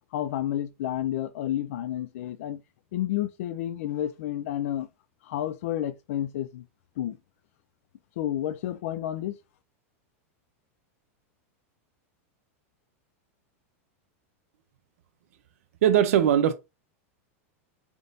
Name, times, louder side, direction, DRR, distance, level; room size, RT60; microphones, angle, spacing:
voice 1, 0.1-2.6 2.9-4.9 5.2-6.6 7.0-7.2 8.2-9.4, left 12 dB, 70° left, 0.4 m, -30 dB
voice 2, 15.8-16.5, right 10 dB, 75° right, 0.5 m, -20 dB
3.6 x 2.6 x 3.8 m
supercardioid pair, 150°, 8 cm